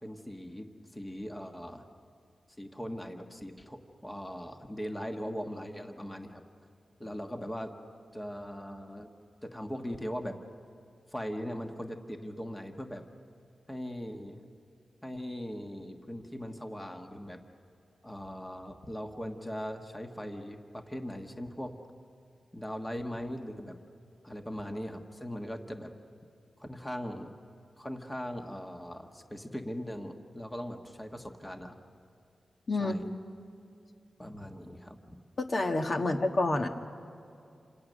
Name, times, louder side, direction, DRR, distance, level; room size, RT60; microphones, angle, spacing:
voice 1, 0.0-1.8 2.6-6.4 7.0-7.7 8.1-9.1 9.4-10.4 11.1-13.0 13.7-14.4 15.0-17.4 18.0-21.7 22.5-23.8 24.2-25.9 26.6-27.3 27.8-31.8 32.8-33.1 34.2-35.2, equal, 10° left, 3 dB, 1.4 m, -40 dB
voice 2, 32.7-33.0 35.4-36.7, left 2 dB, 45° left, 3 dB, 1.6 m, -28 dB
28.5 x 27.5 x 6.5 m, 2.6 s
wide cardioid pair, 150°, 0 cm